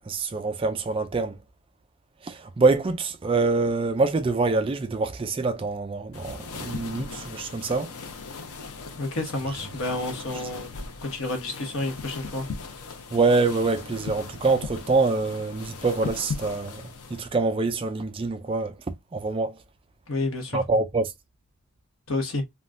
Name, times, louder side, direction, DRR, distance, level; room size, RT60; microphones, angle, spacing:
voice 1, 0.0-1.4 2.2-7.9 13.1-16.8 17.1-18.8 19.1-19.6 20.5-21.1, right 3 dB, 25° right, 0.3 m, -25 dB
sound 1, 6.1-17.3, left 4 dB, 85° left, 0.7 m, -38 dB
voice 2, 9.0-10.7 11.0-12.4 20.1-20.6 22.1-22.4, left 2 dB, 65° left, 1.0 m, -30 dB
3.6 x 2.2 x 2.5 m
head